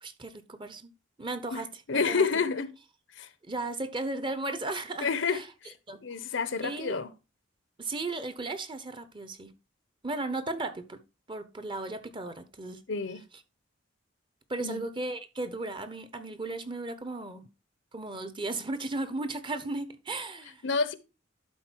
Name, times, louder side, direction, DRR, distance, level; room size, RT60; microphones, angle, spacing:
voice 1, 0.0-0.9 1.2-2.4 3.4-5.4 5.9-6.0 6.6-7.0 7.8-9.5 10.0-11.0 11.3-12.8 14.5-17.4 17.9-20.6, right 2 dB, 25° right, 0.9 m, -35 dB
voice 2, 1.5-2.7 3.2-3.3 5.0-5.7 6.0-7.1 12.9-13.2 14.6-14.8 20.6-20.9, left 5 dB, 70° left, 0.9 m, -29 dB
11.5 x 4.2 x 4.5 m
head